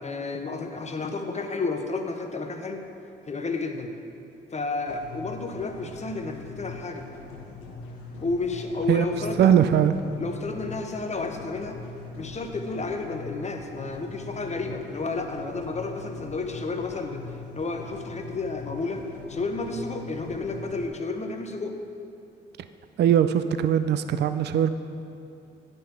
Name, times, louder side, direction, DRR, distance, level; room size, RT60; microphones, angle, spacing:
voice 1, 0.0-2.8 3.3-3.9 4.5-7.1 8.2-9.5 10.2-11.8 12.1-17.3 17.5-19.0 19.3-21.8, left 3 dB, 30° left, 5 dB, 1.0 m, -31 dB
sound 1, 4.9-20.9, left 3 dB, 85° left, 1.0 m, -42 dB
voice 2, 9.4-9.9 23.0-24.7, right 9 dB, 55° right, 11 dB, 0.4 m, -20 dB
9.1 x 5.4 x 5.9 m, 2.7 s
hypercardioid pair, 50°, 21 cm